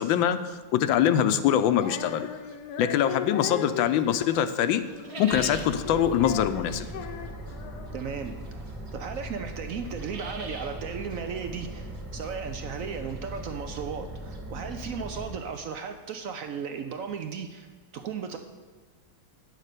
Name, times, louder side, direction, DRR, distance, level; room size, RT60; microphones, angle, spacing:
voice 1, 0.0-2.3 2.8-4.8 5.2-6.9, left 10 dB, 85° left, 10 dB, 1.4 m, -24 dB
Female singing, 1.7-8.1, left 8 dB, 65° left, 1.1 m, -38 dB
sound 1, 1.8-3.8 4.1-15.6, right 2 dB, 50° right, 1.6 m, -45 dB
sound 2, 5.3-15.4, right 1 dB, 25° right, 1.8 m, -39 dB
voice 2, 7.9-8.4 8.9-18.4, right 6 dB, 75° right, 7 dB, 0.7 m, -35 dB
9.2 x 6.5 x 6.6 m, 1.5 s
omnidirectional pair, 2.1 m